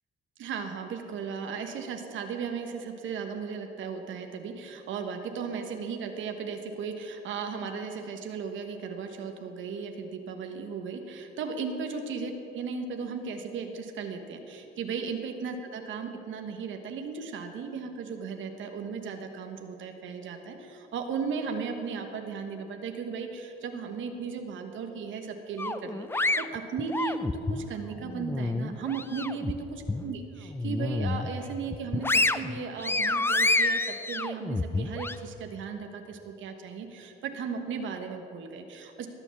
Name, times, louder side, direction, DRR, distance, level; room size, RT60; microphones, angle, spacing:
voice 1, 0.4-39.1, right 5 dB, 75° right, 5 dB, 1.3 m, -36 dB
sound 1, 25.6-27.6 28.1-29.5 29.9-30.0 30.5-31.3 31.7-35.2, left 2 dB, 10° left, 0.5 m, -28 dB
18.0 x 7.1 x 7.1 m, 3.0 s
cardioid pair, 90°, 20 cm